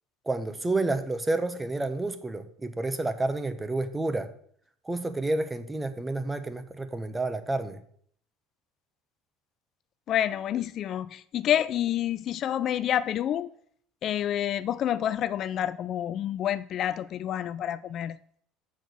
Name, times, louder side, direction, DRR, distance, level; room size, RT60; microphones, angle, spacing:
voice 1, 0.3-4.3 4.8-7.8, right 2 dB, 15° right, 1.1 m, -30 dB
voice 2, 10.1-13.5 14.0-18.2, left 11 dB, 50° left, 0.3 m, -28 dB
6.3 x 6.1 x 6.8 m
hypercardioid pair, 80°, 0 cm